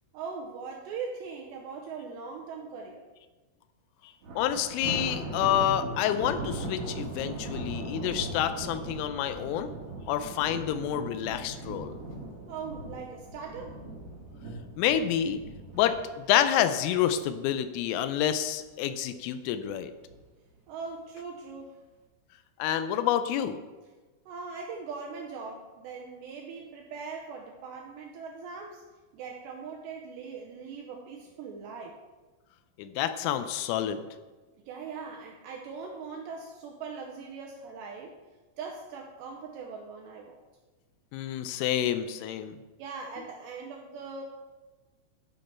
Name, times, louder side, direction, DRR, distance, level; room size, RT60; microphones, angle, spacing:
voice 1, 0.1-3.1 12.5-13.8 20.7-21.8 24.3-28.8 29.1-32.0 34.7-38.2 38.6-40.4 42.8-44.2, right 5 dB, 85° right, 0 dB, 2.5 m, -40 dB
Thunder, 4.2-17.5 17.9-18.2 18.6-18.7 19.6-20.1, right 1 dB, 70° right, 1.4 m, -39 dB
voice 2, 4.4-9.7 10.1-12.0 14.8-15.4 15.7-19.9 22.6-23.6 32.8-34.0 41.1-42.6, left 10 dB, 90° left, 10 dB, 3.2 m, -28 dB
12.0 x 5.4 x 4.4 m, 1.3 s
omnidirectional pair, 5.7 m